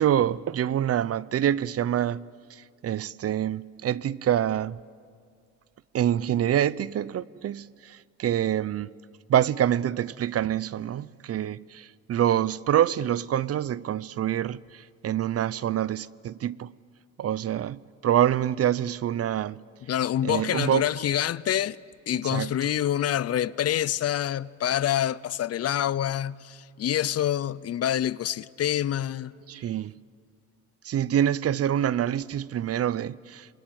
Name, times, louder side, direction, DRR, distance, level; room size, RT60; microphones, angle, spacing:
voice 1, 0.0-2.2 2.5-4.8 5.9-8.9 9.3-16.7 17.2-19.6 20.2-20.9 22.3-22.5 29.5-29.9 30.8-33.5, right 10 dB, 50° right, 0.6 m, -26 dB
voice 2, 19.9-21.8 22.1-29.3, left 11 dB, 55° left, 0.6 m, -26 dB
27.5 x 22.0 x 8.9 m
cardioid pair, 90°, 30 cm